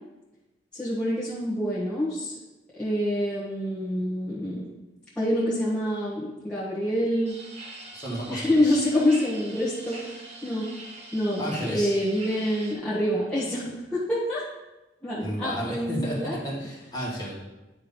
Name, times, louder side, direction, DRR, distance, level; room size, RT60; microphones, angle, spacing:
voice 1, 0.7-2.3 2.7-4.7 5.2-7.4 8.3-10.7 11.1-14.4 15.0-16.4, left 1 dB, 5° left, -10 dB, 1.3 m, -26 dB
sound 1, 7.3-12.7, right 2 dB, 35° right, 1.2 m, -43 dB
voice 2, 7.9-8.9 11.4-11.9 15.2-17.3, equal, 20° left, -5 dB, 1.9 m, -32 dB
9.6 x 3.4 x 5.2 m, 1.0 s
head